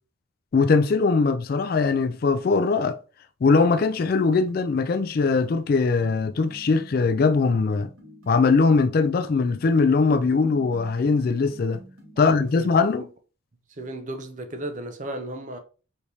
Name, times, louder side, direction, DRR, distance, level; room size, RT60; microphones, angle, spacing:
voice 1, 0.5-3.0 3.4-7.9 8.3-11.8 12.2-13.1, left 4 dB, 45° left, 0.3 m, -21 dB
sound 1, 4.2-12.7, right 1 dB, 85° right, 1.8 m, -48 dB
voice 2, 12.2-12.7 13.0-13.1 13.7-15.6, right 1 dB, 35° right, 0.6 m, -35 dB
4.7 x 3.3 x 2.7 m
head